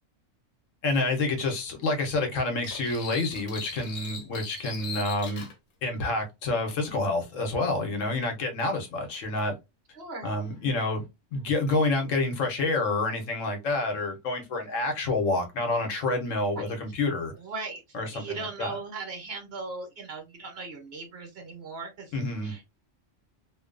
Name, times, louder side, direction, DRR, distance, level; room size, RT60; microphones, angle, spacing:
voice 1, 0.8-5.5 5.8-9.5 10.2-11.0 11.3-17.3 17.9-18.8 22.1-22.5, left 2 dB, 90° left, 1.2 m, -28 dB
sound 1, 2.6-5.5, left 5 dB, 65° left, 1.1 m, -39 dB
voice 2, 9.9-10.3 16.6-16.7 17.4-17.8 18.1-22.1 22.4-22.6, right 3 dB, 55° right, 1.1 m, -38 dB
2.7 x 2.2 x 2.4 m
omnidirectional pair, 1.3 m